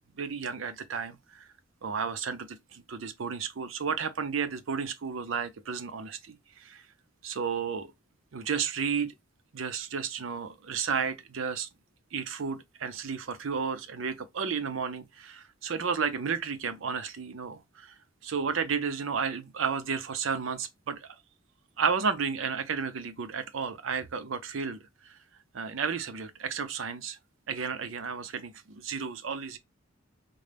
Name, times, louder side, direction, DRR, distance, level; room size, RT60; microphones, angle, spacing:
voice 1, 0.2-1.5 1.8-6.8 7.2-7.9 8.3-9.1 9.5-11.7 12.1-17.9 18.2-21.1 21.8-25.2 25.5-27.2 27.5-29.6, right 6 dB, 85° right, 0.5 m, -32 dB
3.8 x 2.2 x 3.3 m
head